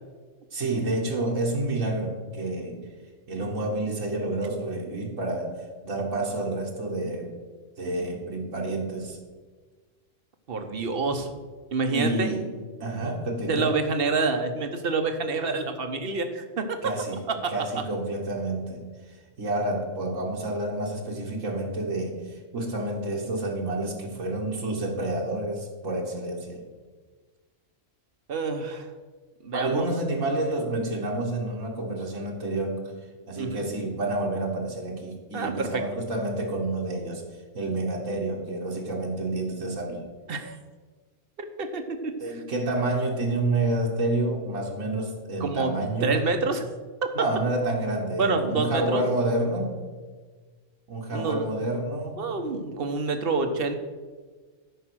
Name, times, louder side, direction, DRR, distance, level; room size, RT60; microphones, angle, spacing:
voice 1, 0.5-2.9 3.3-5.6 5.8-7.3 7.8-9.2 11.9-12.5 12.8-13.7 16.8-18.9 19.4-26.6 29.5-32.9 33.3-37.2 37.5-40.1 42.2-46.2 47.2-49.8 50.9-52.3, right 2 dB, 80° right, -1 dB, 1.9 m, -29 dB
voice 2, 10.5-11.3 11.7-12.3 13.5-16.9 17.3-17.8 28.3-28.9 29.4-29.9 33.4-33.7 35.3-35.8 40.3-40.6 41.6-42.4 45.4-45.7 46.0-46.6 48.2-49.1 51.1-51.5 52.2-53.8, right 4 dB, 50° right, 7 dB, 1.2 m, -27 dB
12.5 x 5.6 x 6.2 m, 1.4 s
omnidirectional pair, 1.3 m